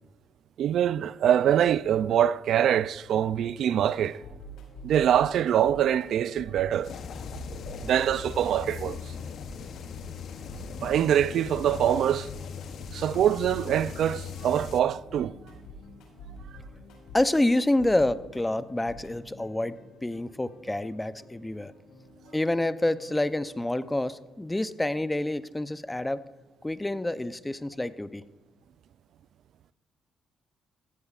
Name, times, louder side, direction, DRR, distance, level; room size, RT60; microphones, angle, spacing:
voice 1, 0.6-4.2 4.8-6.9 7.8-9.0 10.8-12.3 12.9-15.3, right 10 dB, 70° right, 0.3 m, -24 dB
sound 1, 3.8-23.6, equal, 85° left, 5.0 m, -48 dB
sound 2, 6.8-14.8, left 6 dB, 65° left, 0.8 m, -39 dB
voice 2, 17.1-19.8 20.0-21.7 22.3-26.2 26.6-28.2, left 1 dB, 10° left, 0.6 m, -27 dB
16.5 x 15.0 x 2.5 m
cardioid pair, 90°, 0 cm